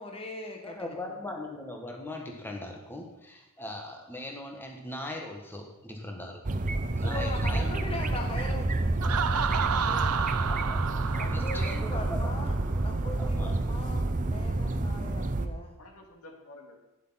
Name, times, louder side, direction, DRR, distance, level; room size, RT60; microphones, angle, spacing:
voice 1, 0.0-0.8 7.0-10.0 11.1-15.8, left 2 dB, 25° left, 2 dB, 1.2 m, -40 dB
voice 2, 0.6-6.6 7.0-7.7 10.4-10.8 11.3-12.4 13.2-13.5, left 1 dB, 10° left, 1 dB, 1.4 m, -40 dB
sound 1, 6.4-15.5, right 2 dB, 35° right, 0.7 m, -29 dB
voice 3, 7.4-8.3 11.0-12.3 12.5-12.7 13.5-13.9 15.8-16.8, left 1 dB, 80° left, 3 dB, 2.2 m, -48 dB
Laughter, 9.0-12.7, right 7 dB, 85° right, 0.7 m, -31 dB
11.5 x 10.0 x 5.7 m, 0.96 s
head